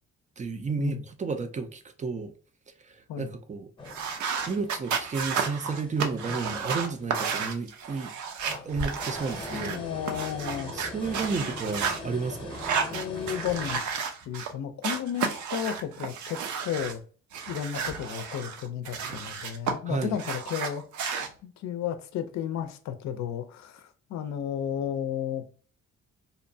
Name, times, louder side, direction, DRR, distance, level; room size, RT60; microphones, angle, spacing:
voice 1, 0.4-2.3 2.8-3.7 4.5-8.1 8.6-9.9 10.7-12.6 19.8-20.2, right 4 dB, 25° right, 0.4 m, -32 dB
sound 1, 3.8-5.0 5.4-7.0 7.4-7.5 8.3-13.8, left 2 dB, 15° left, 0.7 m, -41 dB
sound 2, 3.9-9.8 10.1-12.0 12.5-14.5 14.8-17.0 17.3-19.7 20.0-21.3, right 6 dB, 70° right, 0.6 m, -32 dB
voice 2, 9.5-10.7 11.4-11.5 12.9-13.8 14.3-17.0 17.5-20.8 21.4-25.4, left 9 dB, 65° left, 0.5 m, -33 dB
2.7 x 2.1 x 2.6 m
cardioid pair, 90°, 30 cm